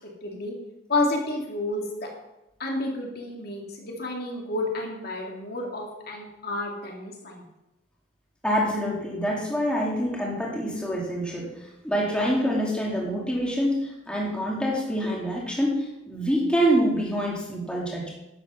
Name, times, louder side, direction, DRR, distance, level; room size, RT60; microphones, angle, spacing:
voice 1, 0.2-0.5 0.9-2.1 2.6-7.4, left 2 dB, 55° left, 0 dB, 2.6 m, -30 dB
voice 2, 8.4-18.1, equal, 5° left, -3 dB, 2.5 m, -26 dB
11.5 x 8.5 x 5.8 m, 0.91 s
head